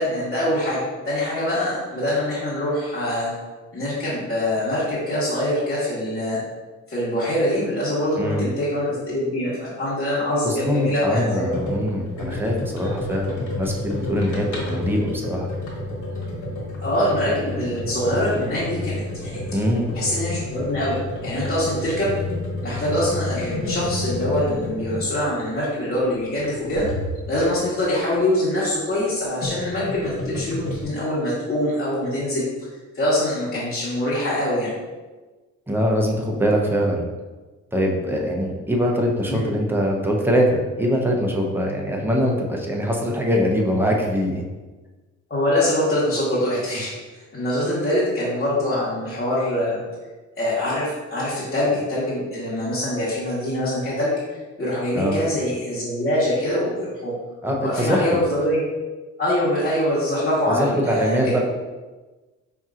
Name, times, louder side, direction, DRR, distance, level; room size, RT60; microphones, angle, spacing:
voice 1, 0.0-3.3 3.7-6.4 6.9-11.5 16.8-19.4 19.9-22.2 22.6-26.8 27.3-32.5 32.9-34.7 39.2-39.4 45.3-46.9 47.3-49.8 50.4-54.1 54.6-57.1 57.6-58.6 59.2-61.4, left 1 dB, 30° left, -11 dB, 1.4 m, -24 dB
voice 2, 10.4-15.5 19.5-19.9 35.7-37.1 37.7-44.5 54.9-55.2 57.4-58.2 60.5-61.4, equal, 5° right, -1 dB, 0.7 m, -23 dB
sound 1, 11.5-27.9 28.9-30.8, left 1 dB, 75° left, 1.2 m, -30 dB
5.3 x 2.8 x 2.5 m, 1.3 s
cardioid pair, 90°, 30 cm